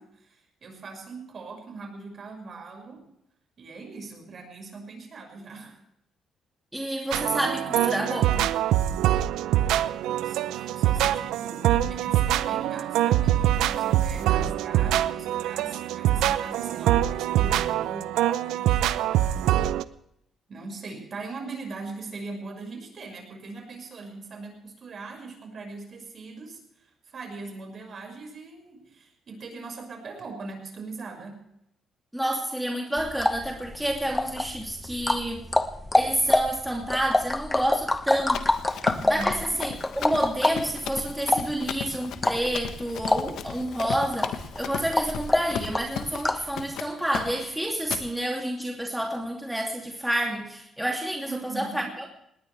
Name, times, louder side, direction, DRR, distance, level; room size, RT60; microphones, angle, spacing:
voice 1, 0.0-3.1 3.6-5.8 10.0-19.6 20.5-31.4 39.0-39.7 51.2-52.0, right 3 dB, 50° right, 4 dB, 5.9 m, -41 dB
voice 2, 6.7-8.5 32.1-35.5 35.9-38.5 39.1-52.1, right 1 dB, 5° right, 0 dB, 2.7 m, -29 dB
sound 1, 7.1-19.8, right 12 dB, 90° right, 0.6 m, -24 dB
sound 2, 33.0-46.5, left 2 dB, 15° left, 1.1 m, -27 dB
Run, 38.3-46.3 46.6-46.9 47.1-47.5 47.9-48.1, left 8 dB, 80° left, 1.3 m, -36 dB
19.5 x 19.0 x 3.4 m, 0.75 s
cardioid pair, 90°, 0 cm